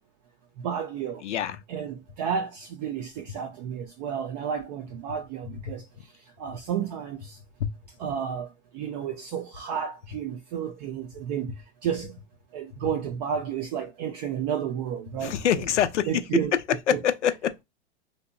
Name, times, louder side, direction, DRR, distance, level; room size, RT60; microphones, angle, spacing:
voice 1, 0.6-1.2 1.7-5.8 6.4-7.4 8.0-8.5 8.7-11.5 11.8-12.1 12.5-15.3 16.1-16.6 16.9-17.0, right 8 dB, 40° right, 0.4 m, -31 dB
voice 2, 1.2-1.6 5.7-5.8 7.6-7.7 15.2-16.2 16.9-17.6, left 9 dB, 90° left, 0.5 m, -25 dB
2.8 x 2.1 x 2.4 m
hypercardioid pair, 115°, 34 cm